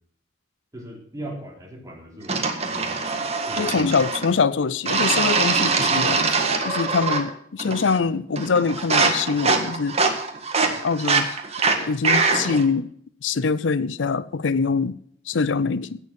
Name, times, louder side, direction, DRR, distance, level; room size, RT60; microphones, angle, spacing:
voice 1, 0.7-3.0 3.5-4.0, right 1 dB, 20° right, 3.9 m, -39 dB
sound 1, 2.3-4.3 4.9-7.3 7.6-8.0 8.4-12.6, right 4 dB, 35° right, 1.7 m, -23 dB
voice 2, 3.6-6.3 6.6-10.0 10.8-11.3 11.8-12.9 13.2-14.9 15.3-16.0, left 5 dB, 80° left, 0.6 m, -23 dB
17.0 x 6.8 x 6.4 m
head